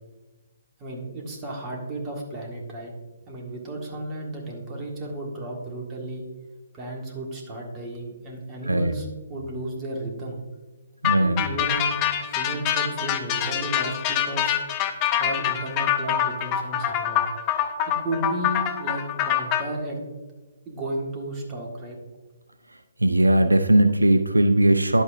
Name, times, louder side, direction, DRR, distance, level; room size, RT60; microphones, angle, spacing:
voice 1, 0.8-2.9 3.3-6.2 6.7-10.4 11.2-11.9 12.2-14.6 15.2-17.2 17.9-20.0 20.6-22.0, right 1 dB, 20° right, 0 dB, 1.7 m, -33 dB
sound 1, 11.0-19.6, left 10 dB, 25° left, 0.7 m, -25 dB
voice 2, 11.0-11.4 23.0-25.0, right 1 dB, 80° right, 9 dB, 0.5 m, -19 dB
10.5 x 8.0 x 2.6 m, 1.3 s
figure-of-eight pair, 130°, 0 cm